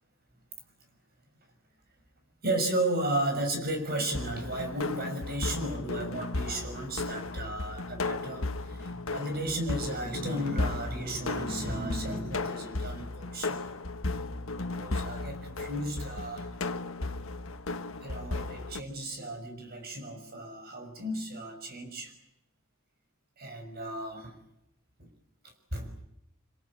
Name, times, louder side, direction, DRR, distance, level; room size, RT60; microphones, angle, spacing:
voice 1, 2.4-13.6 14.6-16.5 18.0-22.1 23.4-24.4 25.0-25.1 25.7-25.9, right 1 dB, 50° right, 6 dB, 6.5 m, -34 dB
sound 1, 4.1-18.8, left 2 dB, 70° left, 1.6 m, -35 dB
26.5 x 23.0 x 8.8 m, 0.85 s
head